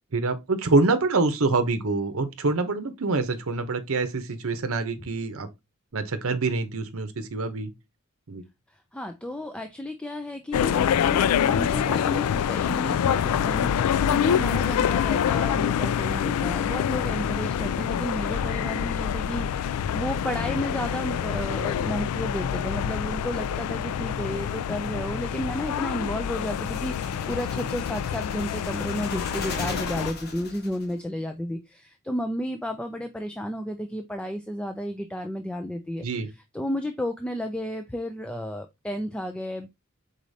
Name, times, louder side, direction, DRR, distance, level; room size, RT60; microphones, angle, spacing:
voice 1, 0.1-5.5 5.9-7.7 8.3-8.4 36.0-36.3, right 3 dB, 65° right, 0.8 m, -25 dB
voice 2, 8.9-36.1 36.5-39.7, equal, 5° left, 0.4 m, -32 dB
sound 1, 10.5-30.1, left 8 dB, 85° left, 0.3 m, -26 dB
sound 2, 26.4-30.9, left 3 dB, 45° left, 1.2 m, -38 dB
4.9 x 4.1 x 2.6 m
head